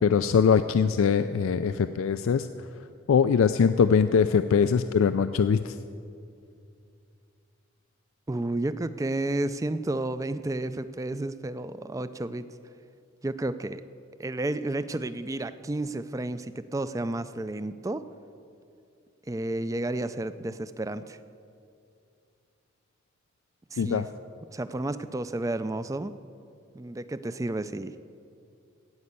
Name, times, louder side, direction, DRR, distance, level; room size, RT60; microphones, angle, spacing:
voice 1, 0.0-2.5 3.1-5.8 23.8-24.1, left 6 dB, 85° left, 11 dB, 0.4 m, -22 dB
voice 2, 8.3-12.5 13.2-13.8 14.2-18.0 19.3-21.2 23.7-24.1 24.5-26.1 26.7-28.0, right 2 dB, 15° right, 13 dB, 0.3 m, -31 dB
16.0 x 5.4 x 8.2 m, 2.4 s
head